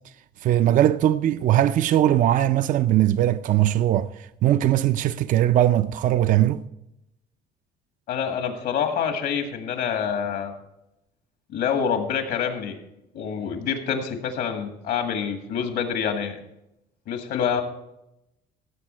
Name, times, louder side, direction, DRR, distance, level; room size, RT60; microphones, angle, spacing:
voice 1, 0.4-6.6, right 12 dB, 50° right, 0.4 m, -20 dB
voice 2, 8.1-10.5 11.5-12.8 13.1-16.4 17.1-17.6, left 7 dB, 75° left, 1.9 m, -26 dB
16.0 x 7.4 x 4.4 m
cardioid pair, 110°, 17 cm